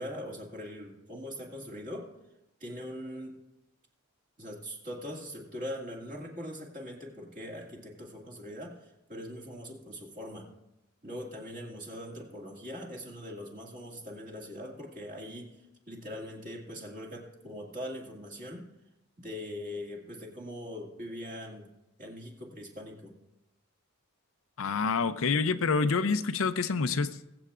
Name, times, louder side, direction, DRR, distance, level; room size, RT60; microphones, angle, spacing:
voice 1, 0.0-2.1 2.6-3.3 4.4-10.5 11.0-15.6 15.9-18.6 19.2-21.7 22.0-23.1, equal, 40° right, 0 dB, 2.2 m, -41 dB
voice 2, 24.6-27.2, left 4 dB, 65° left, 10 dB, 0.5 m, -27 dB
22.5 x 7.9 x 2.5 m, 0.95 s
head